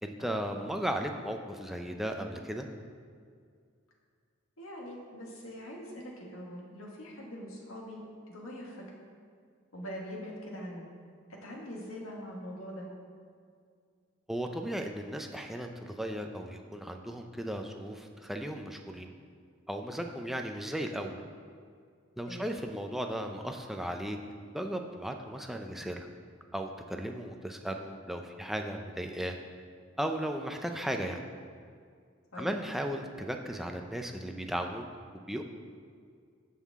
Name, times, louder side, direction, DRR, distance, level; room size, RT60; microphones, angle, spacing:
voice 1, 0.0-2.7 14.3-19.1 19.7-21.2 22.2-24.2 24.5-26.1 26.5-29.4 30.0-31.2 32.4-34.8 35.1-35.4, equal, ahead, 3 dB, 0.5 m, -36 dB
voice 2, 4.6-8.8 9.7-10.9 11.3-12.9 22.2-22.5 32.3-32.5, equal, 90° left, -2 dB, 1.9 m, -43 dB
15.5 x 5.7 x 3.6 m, 2.1 s
head